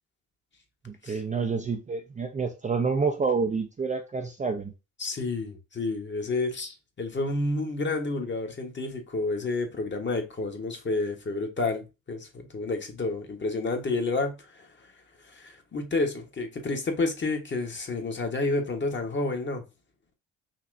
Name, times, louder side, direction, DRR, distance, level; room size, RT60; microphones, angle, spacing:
voice 1, 0.8-4.7, right 4 dB, 20° right, 0.6 m, -28 dB
voice 2, 5.0-14.7 15.2-19.6, left 3 dB, 30° left, 1.3 m, -30 dB
5.7 x 2.9 x 2.6 m
figure-of-eight pair, 50°, 40 cm